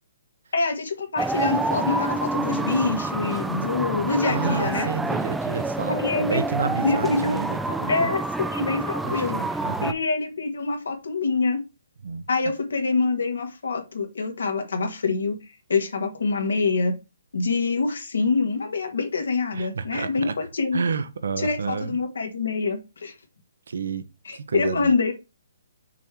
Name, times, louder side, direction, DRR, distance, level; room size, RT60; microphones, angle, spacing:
voice 1, 0.5-4.9 5.9-6.4 6.8-7.4 7.9-9.4 9.8-11.6 12.3-15.4 15.7-16.9 17.3-20.8 21.4-23.1 24.3-25.1, left 4 dB, 80° left, 1.9 m, -25 dB
sound 1, 1.2-9.9, right 2 dB, 5° right, 0.4 m, -28 dB
voice 2, 4.3-8.1 9.0-9.9 12.0-12.3 19.5-20.3 20.7-22.0 23.7-24.1 24.3-24.9, right 5 dB, 75° right, 0.9 m, -30 dB
6.1 x 3.6 x 4.5 m
hypercardioid pair, 150°, 0 cm